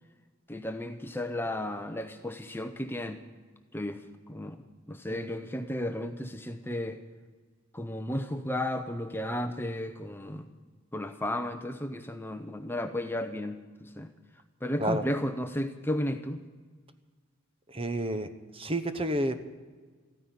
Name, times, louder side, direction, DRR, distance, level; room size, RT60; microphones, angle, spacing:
voice 1, 0.5-3.2 3.7-4.0 4.3-4.6 4.9-7.0 7.7-10.5 10.9-14.1 14.6-16.4, left 1 dB, 10° left, 7 dB, 0.6 m, -33 dB
voice 2, 17.7-18.3 18.5-19.4, right 1 dB, 25° right, 9 dB, 0.9 m, -30 dB
14.5 x 9.8 x 9.8 m, 1.4 s
head